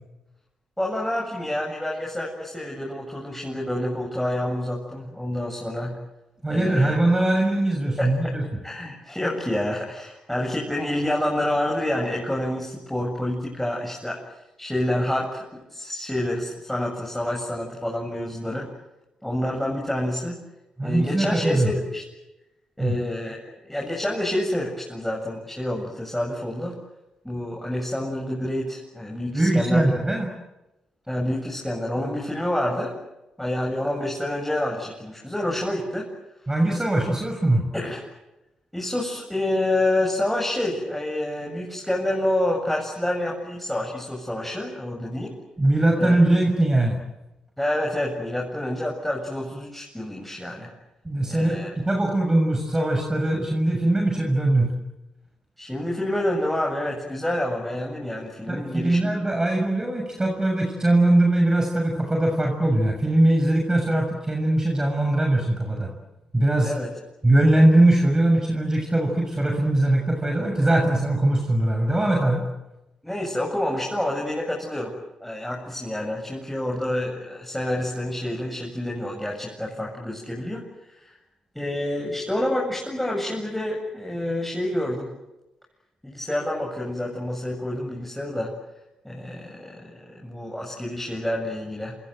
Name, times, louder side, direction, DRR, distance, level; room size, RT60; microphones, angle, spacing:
voice 1, 0.8-6.0 6.5-7.0 8.0-8.4 8.6-14.2 14.6-18.7 19.2-20.4 20.8-22.0 22.8-26.8 27.2-29.9 31.1-33.0 33.4-36.1 37.7-38.0 38.7-45.3 46.0-46.2 47.6-50.7 51.3-51.7 55.6-59.1 66.6-66.9 73.0-74.9 75.2-80.6 81.0-81.1 81.5-85.1 86.0-88.5 89.0-92.0, left 1 dB, 5° left, -1 dB, 7.9 m, -28 dB
voice 2, 6.4-8.4 20.8-21.7 22.8-23.0 29.3-30.3 36.5-37.6 45.6-47.0 51.0-54.7 58.5-65.9 66.3-66.7 67.2-72.4, right 1 dB, 20° right, 2 dB, 6.7 m, -21 dB
27.5 x 26.5 x 7.9 m, 0.97 s
hypercardioid pair, 40°, 3 cm